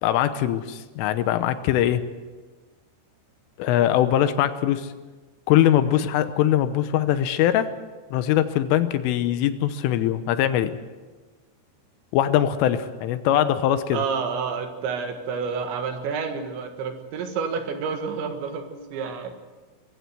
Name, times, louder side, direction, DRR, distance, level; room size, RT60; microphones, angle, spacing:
voice 1, 0.0-2.0 3.6-4.9 5.5-7.7 8.1-10.7 12.1-14.0, left 11 dB, 80° left, 11 dB, 3.4 m, -22 dB
voice 2, 13.9-19.3, right 5 dB, 70° right, 6 dB, 3.7 m, -29 dB
23.0 x 15.5 x 7.8 m, 1.3 s
omnidirectional pair, 5.9 m